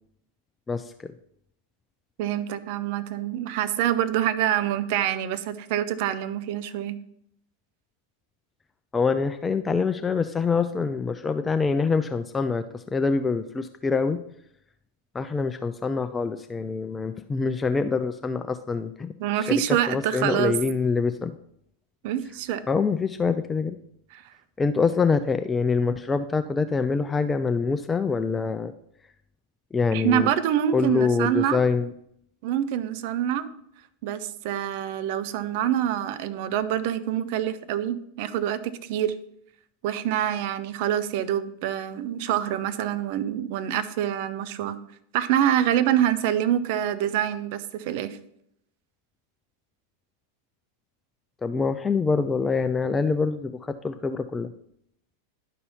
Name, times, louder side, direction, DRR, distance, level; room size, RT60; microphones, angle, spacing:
voice 1, 0.7-1.1 8.9-14.2 15.1-19.1 19.9-21.3 22.7-23.8 24.6-28.7 29.7-30.3 30.7-31.9 51.4-54.5, left 4 dB, 15° left, 9 dB, 0.4 m, -25 dB
voice 2, 2.2-7.0 19.2-20.6 22.0-22.6 24.1-24.2 29.9-31.6 32.4-33.5 34.0-39.2 39.8-44.8 45.1-48.2, right 11 dB, 50° right, 12 dB, 0.7 m, -26 dB
11.0 x 5.4 x 4.2 m, 0.73 s
figure-of-eight pair, 90°, 0 cm